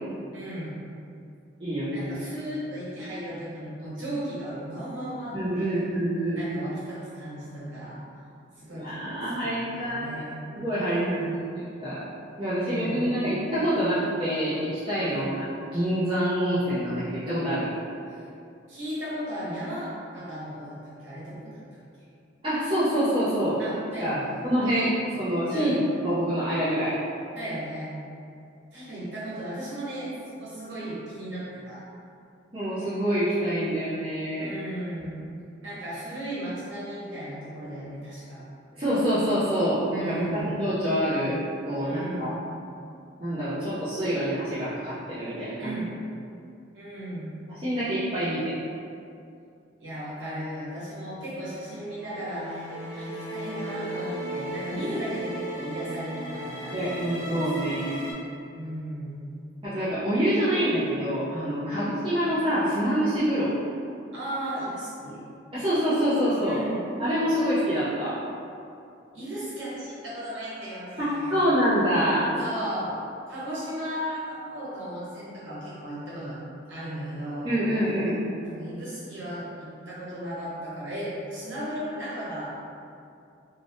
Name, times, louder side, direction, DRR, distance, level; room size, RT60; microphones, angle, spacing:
voice 1, 0.3-0.8 1.9-5.7 6.3-8.0 8.6-10.4 10.7-11.3 12.5-13.1 15.0-15.3 18.1-18.2 18.7-21.6 23.6-24.4 25.5-25.8 27.3-27.9 28.7-31.8 34.4-35.2 35.6-38.4 40.0-40.5 41.8-42.3 45.6-45.9 46.7-47.3 49.8-57.7 58.5-59.3 61.7-61.9 64.1-65.2 66.4-66.8 69.1-71.5 72.4-72.9 73.3-76.4 76.7-77.5 78.4-82.5, equal, 80° right, -9 dB, 1.1 m, -36 dB
voice 2, 1.6-2.1 5.3-6.4 8.7-10.2 10.6-11.4 11.8-12.0 12.4-15.4 15.7-17.8 22.4-23.6 24.0-24.2 24.4-25.7 26.0-27.0 32.5-34.6 38.8-41.4 41.7-42.3 43.2-45.8 47.5-48.5 56.7-58.1 59.6-63.5 65.5-66.6 67.0-68.2 71.0-72.3 77.4-78.2, equal, 25° right, -14 dB, 0.6 m, -26 dB
sound 1, 51.5-58.1, right 1 dB, 70° left, 0.8 m, -36 dB
2.6 x 2.4 x 3.4 m, 2.5 s
head